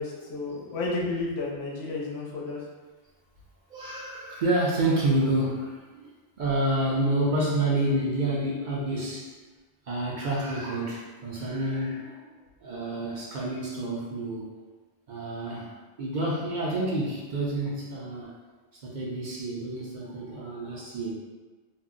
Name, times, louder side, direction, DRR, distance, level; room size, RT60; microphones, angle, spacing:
voice 1, 0.0-2.6, left 3 dB, 80° left, -3 dB, 0.9 m, -32 dB
voice 2, 3.7-6.1 6.4-9.3 9.9-12.3 12.6-14.4 15.1-15.7 16.0-18.3 18.7-21.1, right 1 dB, 55° right, -4 dB, 0.6 m, -28 dB
2.6 x 2.0 x 3.6 m, 1.3 s
omnidirectional pair, 1.1 m